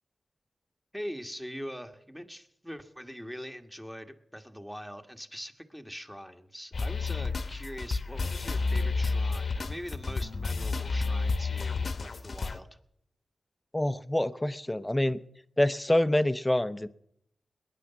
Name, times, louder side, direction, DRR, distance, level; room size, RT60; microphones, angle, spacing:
voice 1, 0.9-12.7, equal, 5° right, 6 dB, 1.6 m, -42 dB
sound 1, 6.7-12.6, left 4 dB, 55° left, 1.0 m, -30 dB
voice 2, 13.7-15.2 15.6-16.9, left 1 dB, 15° left, 14 dB, 0.8 m, -26 dB
19.5 x 10.0 x 7.1 m, 0.73 s
cardioid pair, 55°, 0 cm